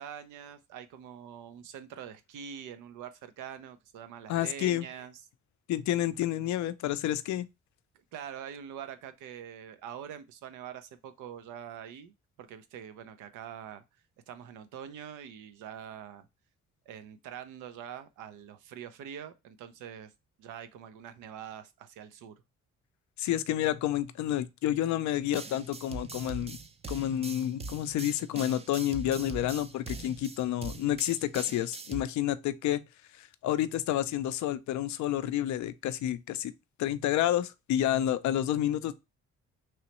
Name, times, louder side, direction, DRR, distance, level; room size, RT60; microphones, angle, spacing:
voice 1, 0.0-5.2 8.1-13.8 14.3-16.3 16.9-20.1 20.4-22.3, right 9 dB, 90° right, 0.6 m, -44 dB
voice 2, 4.3-4.9 5.7-7.5 23.2-26.6 26.9-32.8 33.2-36.5 36.8-38.9, left 12 dB, 70° left, 0.4 m, -29 dB
sound 1, 25.3-32.0, right 4 dB, 20° right, 0.4 m, -42 dB
3.1 x 3.0 x 2.9 m
cardioid pair, 90°, 30 cm